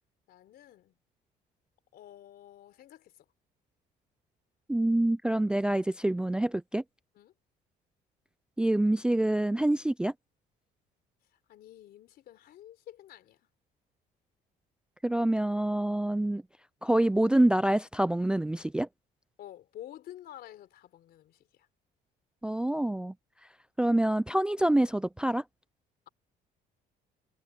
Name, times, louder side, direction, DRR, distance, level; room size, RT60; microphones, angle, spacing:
voice 1, 0.3-0.9 1.9-3.3 7.2-7.3 11.5-13.4 19.4-21.7, left 12 dB, 70° left, 3.9 m, -50 dB
voice 2, 4.7-6.8 8.6-10.1 15.0-16.4 16.8-18.9 22.4-23.1 23.8-25.4, right 1 dB, 5° right, 0.3 m, -26 dB
cardioid pair, 110°, 17 cm